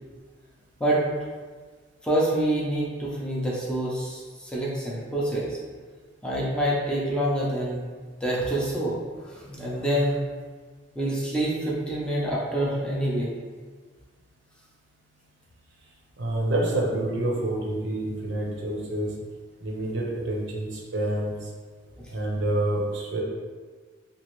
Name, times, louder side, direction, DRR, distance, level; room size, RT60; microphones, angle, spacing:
voice 1, 2.0-5.6 6.2-7.9 8.2-9.0 9.2-10.2 10.9-13.3 22.0-22.1, right 1 dB, 5° left, -6 dB, 0.5 m, -26 dB
voice 2, 16.2-19.1 19.6-21.5 22.1-23.2, right 1 dB, 70° right, -2 dB, 0.6 m, -28 dB
3.0 x 2.4 x 3.0 m, 1.5 s
head